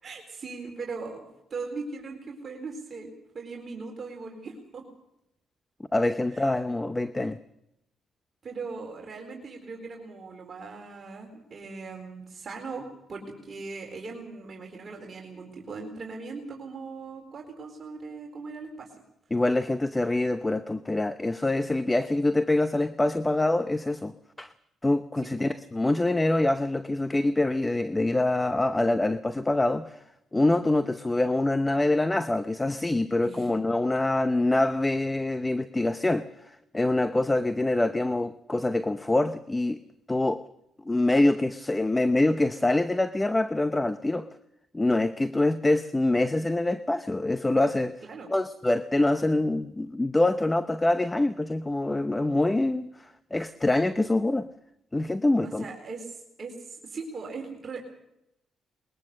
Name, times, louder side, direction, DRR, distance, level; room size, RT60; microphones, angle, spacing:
voice 1, 0.0-4.8 6.3-6.5 8.4-18.9 33.2-33.6 48.1-48.3 55.4-57.8, right 4 dB, 45° right, 1 dB, 4.2 m, -39 dB
voice 2, 5.9-7.4 19.3-24.5 24.8-30.0 30.3-39.8 40.1-40.4 40.8-44.3 44.7-48.0 48.3-54.5 54.9-55.7, left 2 dB, 15° left, 11 dB, 0.8 m, -25 dB
21.5 x 20.5 x 6.6 m, 0.83 s
cardioid pair, 90°, 0 cm